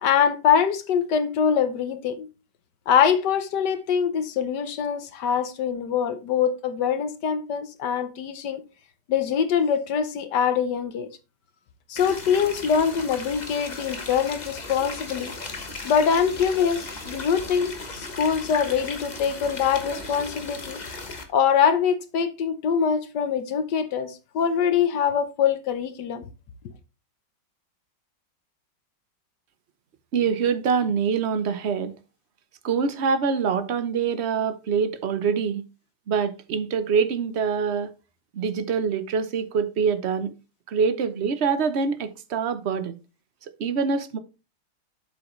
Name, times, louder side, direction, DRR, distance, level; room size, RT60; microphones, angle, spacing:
voice 1, 0.0-2.3 2.9-8.6 9.1-11.1 11.9-15.3 15.8-20.8 21.3-26.2, left 7 dB, 70° left, 1.4 m, -23 dB
sound 1, 12.0-21.2, left 3 dB, 25° left, 1.1 m, -36 dB
voice 2, 30.1-32.0 32.6-35.6 36.1-37.9 38.3-40.3 40.7-43.0 43.6-44.2, right 6 dB, 50° right, 0.9 m, -25 dB
8.3 x 7.2 x 3.1 m
omnidirectional pair, 2.0 m